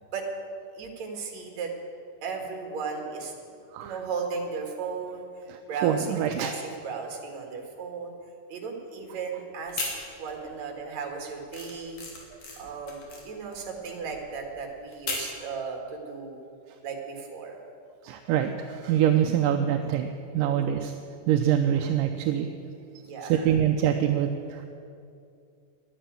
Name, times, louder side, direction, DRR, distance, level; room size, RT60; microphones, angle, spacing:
voice 1, 0.8-1.7 2.2-3.3 3.8-5.3 5.7-8.1 8.5-9.9 10.2-12.0 12.6-16.4 16.8-17.6 20.4-20.9 23.0-23.5, right 5 dB, 60° right, 2 dB, 3.0 m, -35 dB
voice 2, 5.5-6.5 12.3-12.4 18.0-20.9 21.3-22.5 23.2-24.7, right 10 dB, 80° right, 5 dB, 2.2 m, -25 dB
sound 1, 9.6-10.6 10.9-15.4, left 3 dB, 55° left, 3.4 m, -37 dB
11.5 x 10.5 x 9.2 m, 2.4 s
omnidirectional pair, 3.8 m